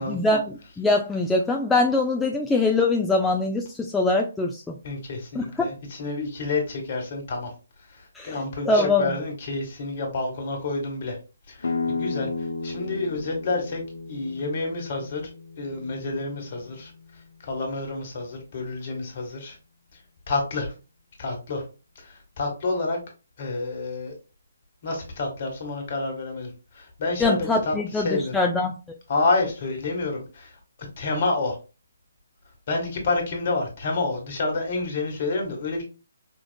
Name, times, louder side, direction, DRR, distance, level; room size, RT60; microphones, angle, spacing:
voice 1, 0.0-4.7 5.3-5.7 8.2-9.1 27.2-28.7, left 2 dB, 5° left, 0 dB, 0.4 m, -23 dB
voice 2, 4.8-7.5 8.2-11.2 11.5-12.3 12.6-13.8 14.1-15.2 15.6-16.9 17.4-19.5 20.3-20.7 21.2-21.6 21.9-23.0 23.4-24.1 24.8-26.5 26.7-28.3 29.1-30.5 31.0-31.6 32.7-35.8, left 3 dB, 45° left, 2 dB, 1.6 m, -28 dB
sound 1, 11.6-17.2, left 3 dB, 70° left, 0.5 m, -33 dB
5.2 x 2.4 x 2.2 m, 0.31 s
figure-of-eight pair, 145°, 0 cm